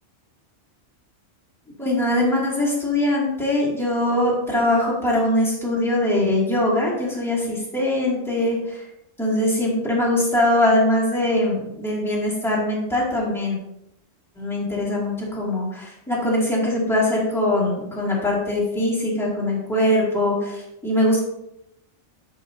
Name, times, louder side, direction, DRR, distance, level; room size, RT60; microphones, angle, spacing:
voice 1, 1.8-8.8 9.2-13.6 14.4-21.2, left 1 dB, ahead, -7 dB, 2.6 m, -22 dB
10.5 x 5.2 x 2.9 m, 0.84 s
omnidirectional pair, 1.4 m